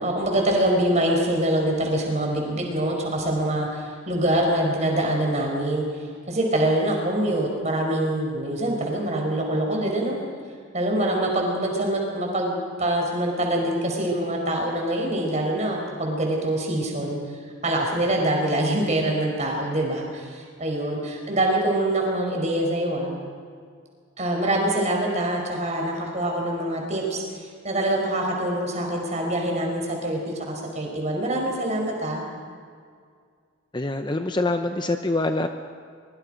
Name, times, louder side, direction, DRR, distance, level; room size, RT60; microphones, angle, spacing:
voice 1, 0.0-10.2 10.7-17.2 17.6-23.1 24.2-32.2, right 1 dB, 35° right, 0 dB, 5.0 m, -25 dB
voice 2, 33.7-35.5, left 2 dB, 20° left, 6 dB, 0.7 m, -25 dB
24.0 x 23.0 x 5.2 m, 2.1 s
head